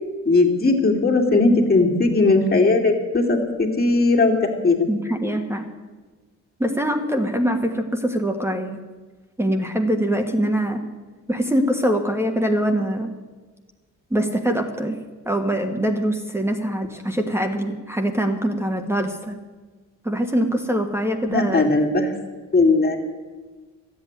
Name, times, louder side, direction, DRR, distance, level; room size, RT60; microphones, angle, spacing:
voice 1, 0.3-4.3 4.6-4.9 21.3-22.1 22.5-23.0, left 3 dB, 30° left, 0 dB, 2.5 m, -18 dB
voice 2, 4.9-5.7 6.6-8.8 9.4-10.8 11.3-13.1 14.1-15.0 15.2-19.4 20.0-21.7, equal, 10° right, 4 dB, 1.4 m, -23 dB
13.0 x 8.3 x 9.6 m, 1.3 s
cardioid pair, 90°, 30 cm